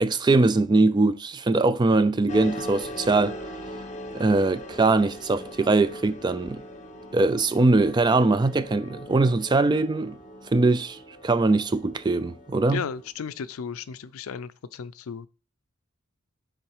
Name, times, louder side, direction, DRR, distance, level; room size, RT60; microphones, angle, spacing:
voice 1, 0.0-3.4 4.1-6.6 7.1-10.2 10.5-12.8, right 3 dB, 20° right, 0.3 m, -22 dB
sound 1, 2.3-13.1, equal, 35° left, 0.7 m, -40 dB
voice 2, 12.7-15.3, left 6 dB, 75° left, 0.4 m, -34 dB
7.3 x 3.8 x 4.8 m
head